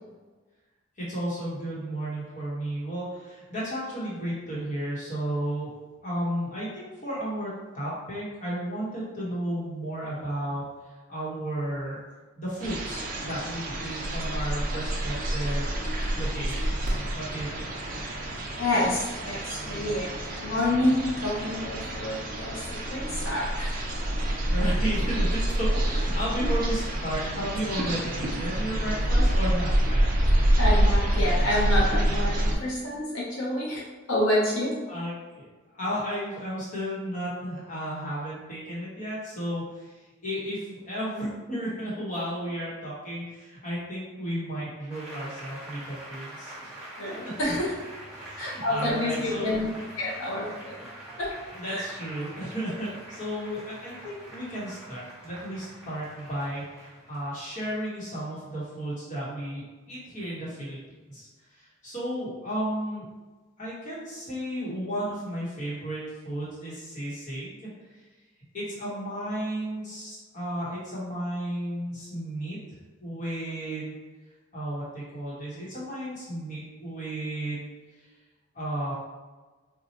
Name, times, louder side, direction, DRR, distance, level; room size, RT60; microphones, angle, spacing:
voice 1, 1.0-5.7 6.0-10.6 11.1-12.0 12.4-17.7 24.4-30.0 34.9-35.5 35.7-39.9 40.2-46.8 48.2-49.5 51.5-60.8 61.1-63.0 63.6-68.0 68.5-74.0 74.5-77.7 78.5-78.9, right 1 dB, 35° left, -7 dB, 1.1 m, -33 dB
sound 1, 12.6-32.6, right 1 dB, 40° right, 0.5 m, -27 dB
voice 2, 18.5-20.1 20.4-22.5 22.9-23.7 24.2-24.4 30.6-33.8 34.1-34.8 47.0-47.7 48.4-49.7 50.0-50.7 51.2-51.3 51.6-51.9, left 1 dB, 75° left, -6 dB, 0.8 m, -28 dB
Applause, 44.9-57.9, right 1 dB, 5° right, 0.8 m, -44 dB
4.2 x 2.3 x 2.8 m, 1.3 s
head